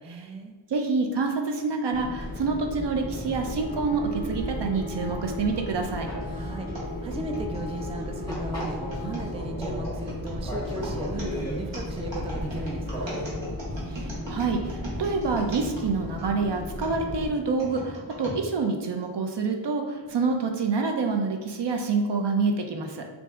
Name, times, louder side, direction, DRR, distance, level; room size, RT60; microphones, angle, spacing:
voice 1, 0.0-0.6 6.3-13.2, right 2 dB, 15° right, 3 dB, 0.3 m, -36 dB
voice 2, 0.7-6.1 13.9-23.1, right 4 dB, 70° right, 3 dB, 0.6 m, -27 dB
Fixed-wing aircraft airplane, 1.9-17.3, left 1 dB, 10° left, 1.2 m, -34 dB
sound 1, 3.3-9.3, left 1 dB, 50° right, 1.1 m, -40 dB
sound 2, 6.7-16.3 16.8-18.4 19.0-19.1 20.0-20.2, equal, 85° right, 1.2 m, -40 dB
5.7 x 2.6 x 2.4 m, 1.4 s
wide cardioid pair, 85°, 44 cm